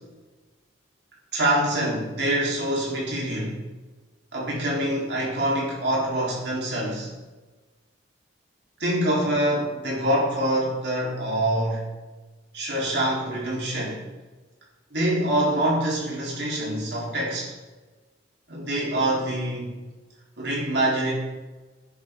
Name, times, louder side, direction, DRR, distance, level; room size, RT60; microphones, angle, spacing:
voice 1, 1.3-3.6 4.3-7.1 8.8-11.8 12.5-14.1 14.9-17.5 18.5-19.7 20.4-21.1, right 1 dB, 60° right, -5 dB, 4.0 m, -25 dB
10.5 x 9.6 x 3.8 m, 1.2 s
head